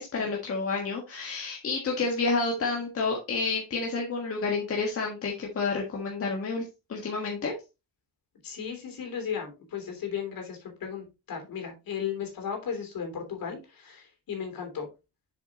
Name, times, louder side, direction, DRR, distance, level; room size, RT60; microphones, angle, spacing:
voice 1, 0.0-7.5, left 4 dB, 30° left, 0 dB, 1.5 m, -30 dB
voice 2, 8.4-14.9, left 7 dB, 50° left, 3 dB, 3.2 m, -35 dB
7.3 x 7.0 x 3.0 m, 0.26 s
cardioid pair, 170°, 43 cm